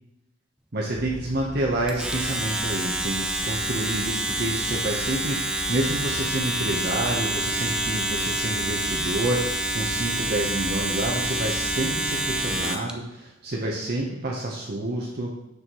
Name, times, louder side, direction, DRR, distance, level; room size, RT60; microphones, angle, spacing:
voice 1, 0.7-15.3, right 1 dB, 50° right, -3 dB, 0.8 m, -28 dB
sound 1, 0.9-12.7, left 1 dB, 50° left, 0.9 m, -40 dB
Domestic sounds home sounds, 1.9-12.9, right 1 dB, 5° right, 0.4 m, -27 dB
6.8 x 6.5 x 3.0 m, 0.92 s
head